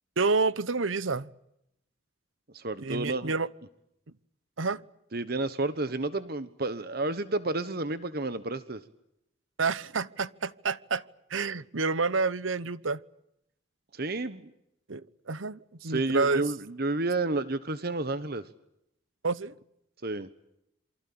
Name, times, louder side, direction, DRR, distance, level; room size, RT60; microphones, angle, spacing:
voice 1, 0.2-1.3 2.8-3.5 4.6-4.8 9.6-11.0 11.3-13.0 14.9-16.4 19.2-19.5, right 4 dB, 80° right, 1.1 m, -29 dB
voice 2, 2.5-3.3 5.1-8.8 13.9-14.5 15.8-18.4 20.0-20.3, right 2 dB, 50° right, 1.2 m, -31 dB
27.5 x 24.5 x 8.7 m
head